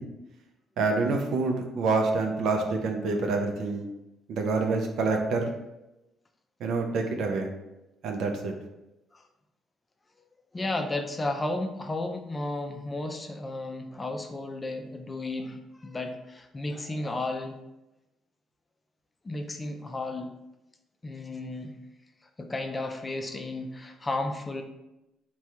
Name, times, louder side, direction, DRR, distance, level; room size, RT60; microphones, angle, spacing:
voice 1, 0.8-3.8 4.3-5.5 6.6-7.5 8.0-8.5, right 3 dB, 70° right, 3 dB, 0.4 m, -27 dB
voice 2, 10.5-17.6 19.2-20.3 21.0-21.8 22.4-24.6, left 2 dB, 25° left, 5 dB, 0.4 m, -33 dB
3.3 x 2.3 x 2.7 m, 0.95 s
supercardioid pair, 65°, 0 cm